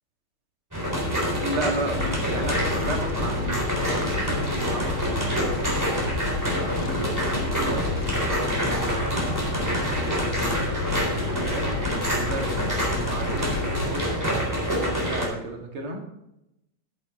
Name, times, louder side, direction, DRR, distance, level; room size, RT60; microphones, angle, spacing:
sound 1, 0.7-15.3, equal, 10° right, 3.7 m, -26 dB
voice 1, 1.4-3.7 4.0-5.2 6.4-7.9 8.5-11.7 12.1-14.2 14.7-16.0, right 2 dB, 80° right, 2 dB, 3.0 m, -34 dB
Fire, 1.9-13.9, left 7 dB, 80° left, 1.7 m, -33 dB
12.0 x 11.0 x 3.7 m, 0.87 s
omnidirectional pair, 2.3 m